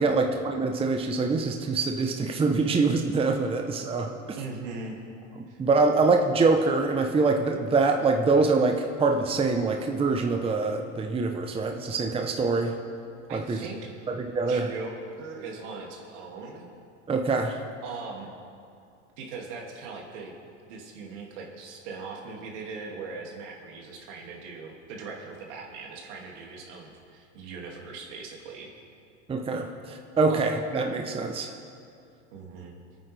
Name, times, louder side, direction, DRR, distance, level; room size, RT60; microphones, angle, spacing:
voice 1, 0.0-4.4 5.6-12.8 13.3-13.6 14.1-14.7 17.1-17.6 29.3-31.5, right 3 dB, 15° right, 3 dB, 0.8 m, -24 dB
voice 2, 4.4-5.0 5.5-5.6 13.3-14.0 14.4-16.7 17.8-18.3 19.2-20.3 20.7-28.7 30.3-30.4 32.3-32.7, right 4 dB, 70° right, -1 dB, 2.5 m, -40 dB
23.5 x 9.1 x 3.4 m, 2.5 s
hypercardioid pair, 105°, 37 cm